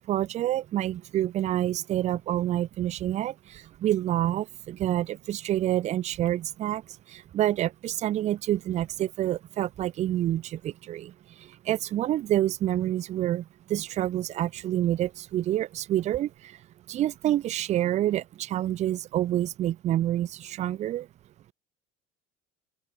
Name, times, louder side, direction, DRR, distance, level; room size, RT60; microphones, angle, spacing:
voice 1, 0.0-3.3 3.8-6.8 7.3-11.1 11.7-13.4 13.7-16.3 16.9-21.1, right 13 dB, 20° right, 0.3 m, -27 dB
open air
figure-of-eight pair, 70°, 38 cm